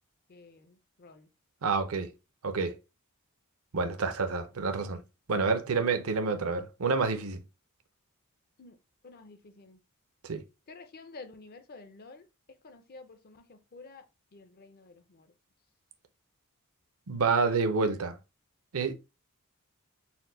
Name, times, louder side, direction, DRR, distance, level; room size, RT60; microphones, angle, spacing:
voice 1, 0.3-1.3 8.6-8.8 9.0-9.8 10.7-12.2 12.6-14.0 14.3-15.3, left 3 dB, 45° left, 0.6 m, -50 dB
voice 2, 1.6-2.1 2.4-2.7 3.7-5.0 5.3-7.4 10.2-10.4 17.1-18.2 18.7-18.9, right 4 dB, 65° right, 0.6 m, -28 dB
4.3 x 2.2 x 3.8 m
head